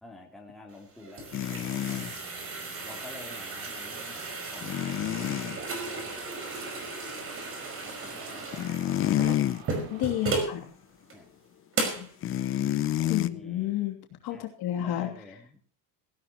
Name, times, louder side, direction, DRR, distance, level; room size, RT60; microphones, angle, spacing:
voice 1, 0.0-2.2 2.8-7.1 7.8-9.7 11.1-11.3 13.0-13.7 14.3-14.4 14.7-15.6, left 2 dB, ahead, -1 dB, 3.2 m, -50 dB
sound 1, 0.7-10.6 11.1-11.2 11.7-12.1, right 3 dB, 25° right, 5.2 m, -35 dB
sound 2, 1.3-2.2 4.6-5.6 8.3-9.6 10.1-10.3 12.2-13.3, left 13 dB, 25° left, 0.6 m, -28 dB
sound 3, 1.5-11.7, right 9 dB, 80° right, 3.6 m, -49 dB
voice 2, 9.9-10.6 12.0-12.1 13.1-14.0 14.2-15.1, left 12 dB, 50° left, 3 dB, 2.9 m, -30 dB
17.5 x 16.5 x 3.0 m, 0.41 s
cardioid pair, 160°, 48 cm